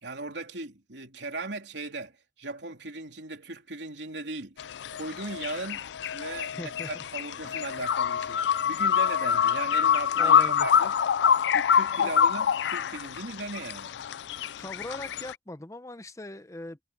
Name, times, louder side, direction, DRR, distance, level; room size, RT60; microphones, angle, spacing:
voice 1, 0.0-4.6 4.9-5.8 6.1-10.9 11.5-14.0, right 2 dB, 80° right, 3.2 m, -38 dB
sound 1, 4.6-15.3, left 8 dB, 75° left, 0.4 m, -26 dB
voice 2, 6.5-7.0 10.2-10.7 12.0-12.1 14.6-16.8, left 1 dB, 15° left, 0.8 m, -40 dB
head